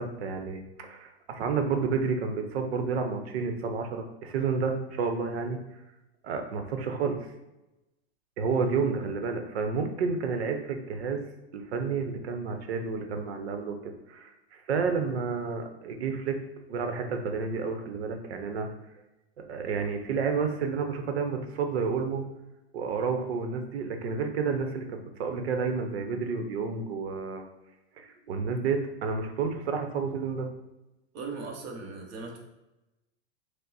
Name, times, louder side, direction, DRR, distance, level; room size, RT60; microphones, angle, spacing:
voice 1, 0.0-5.6 6.2-7.2 8.4-11.2 11.5-16.4 16.7-18.7 19.4-22.2 22.7-27.4 28.0-30.5, right 5 dB, 80° right, 5 dB, 0.8 m, -30 dB
voice 2, 31.1-32.4, right 4 dB, 35° right, 0 dB, 0.9 m, -38 dB
5.2 x 2.1 x 4.0 m, 0.98 s
supercardioid pair, 145°, 31 cm